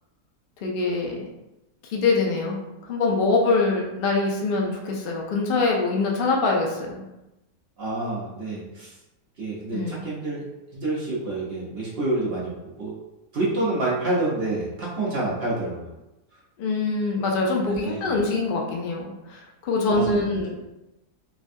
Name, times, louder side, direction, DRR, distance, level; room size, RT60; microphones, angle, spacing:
voice 1, 0.6-1.1 1.9-2.6 2.9-7.0 9.7-9.9 16.6-20.6, left 3 dB, 80° left, -1 dB, 0.5 m, -24 dB
voice 2, 7.8-8.9 9.4-10.4 10.7-12.5 12.8-13.0 13.3-15.9 17.6-18.1 19.9-20.2, right 2 dB, 50° right, -7 dB, 0.8 m, -28 dB
3.3 x 2.2 x 2.6 m, 0.96 s
omnidirectional pair, 1.7 m